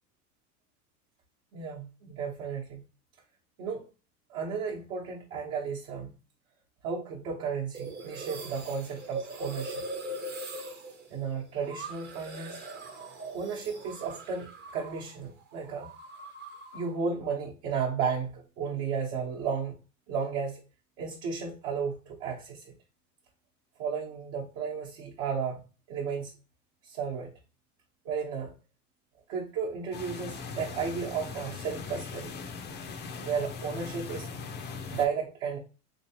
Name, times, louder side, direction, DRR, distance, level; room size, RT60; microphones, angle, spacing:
voice 1, 1.5-2.8 3.6-3.9 4.3-6.1 6.8-9.8 11.1-12.6 13.3-15.9 16.7-19.8 20.1-20.6 21.0-22.7 23.8-26.3 26.8-27.4 28.0-28.6 29.3-32.3 33.2-34.3 34.9-35.6, right 6 dB, 60° right, 0.9 m, -33 dB
sound 1, 7.7-15.2 15.4-16.9, right 2 dB, 25° right, 0.6 m, -41 dB
sound 2, 29.9-35.1, left 5 dB, 25° left, 0.4 m, -40 dB
3.4 x 3.0 x 2.8 m
supercardioid pair, 115°, 44 cm